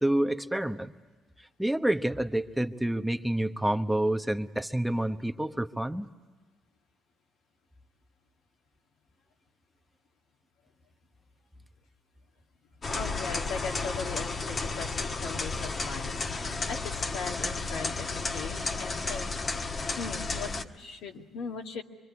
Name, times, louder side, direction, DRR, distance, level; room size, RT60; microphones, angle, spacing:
voice 1, 0.0-0.9 1.6-6.1, right 1 dB, 5° right, 7 dB, 1.0 m, -28 dB
sound 1, 12.8-20.6, left 3 dB, 40° left, 1.4 m, -33 dB
voice 2, 12.9-19.3 20.0-21.8, left 5 dB, 90° left, 1 dB, 2.2 m, -39 dB
25.5 x 24.0 x 9.6 m, 1.4 s
cardioid pair, 90°, 0 cm